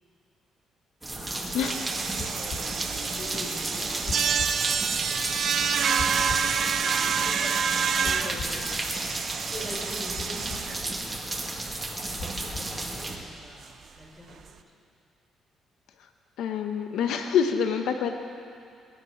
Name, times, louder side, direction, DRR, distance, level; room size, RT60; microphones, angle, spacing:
sound 1, 1.0-13.2, right 2 dB, 15° right, 2.1 m, -33 dB
voice 1, 1.1-5.6 6.2-7.7 7.9-9.2 9.4-11.2 12.4-14.6, left 2 dB, 25° left, -2 dB, 5.3 m, -44 dB
sound 2, 1.6-10.9 11.3-11.4 11.7-11.8 12.1-12.4 12.8-12.9 13.1-13.2 14.5-14.6, right 7 dB, 60° right, 0.8 m, -28 dB
sound 3, 2.2-2.7 4.1-4.5 6.0-6.5 8.0-8.6 10.2-10.6 12.2-12.7, left 4 dB, 55° left, 1.6 m, -37 dB
voice 2, 16.4-18.1, left 7 dB, 80° left, 6 dB, 1.0 m, -26 dB
20.5 x 9.6 x 7.3 m, 2.4 s
cardioid pair, 90°, 0 cm